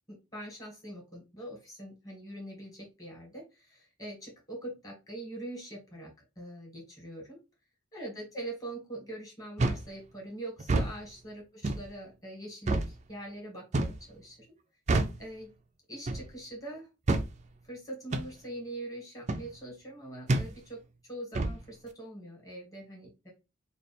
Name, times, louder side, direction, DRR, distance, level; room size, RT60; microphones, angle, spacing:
voice 1, 0.1-7.4 7.9-14.5 15.2-15.5 15.9-16.9 17.6-23.3, right 1 dB, 15° left, -2 dB, 1.8 m, -43 dB
sound 1, 9.6-9.9 10.6-10.9 11.6-11.9 12.7-12.9 13.7-14.0 14.9-15.2 16.1-16.3 17.1-17.3 18.1-18.3 19.3-19.5 20.3-20.5 21.3-21.6, right 2 dB, 35° right, 0.4 m, -28 dB
3.2 x 2.3 x 4.2 m, 0.27 s
head